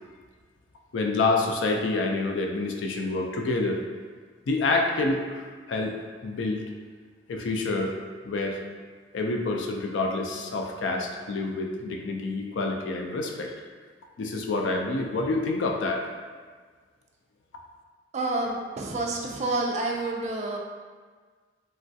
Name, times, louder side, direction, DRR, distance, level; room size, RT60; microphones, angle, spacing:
voice 1, 0.9-3.8 4.5-5.4 5.7-5.9 6.2-6.6 7.3-8.0 8.2-8.6 9.1-13.5 14.2-16.0, left 3 dB, 70° left, 2 dB, 0.4 m, -27 dB
voice 2, 18.1-20.6, right 2 dB, 35° right, 0 dB, 0.4 m, -29 dB
3.2 x 2.3 x 2.6 m, 1.5 s
head